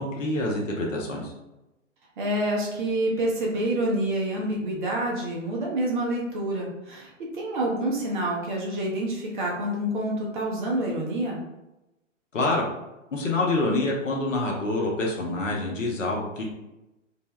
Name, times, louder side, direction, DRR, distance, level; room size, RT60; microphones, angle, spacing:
voice 1, 0.0-1.3 12.3-12.7 13.1-16.5, left 2 dB, 70° left, -1 dB, 0.7 m, -26 dB
voice 2, 2.2-11.4, right 1 dB, 40° right, -2 dB, 0.7 m, -27 dB
2.6 x 2.1 x 3.1 m, 0.96 s
figure-of-eight pair, 115°, 39 cm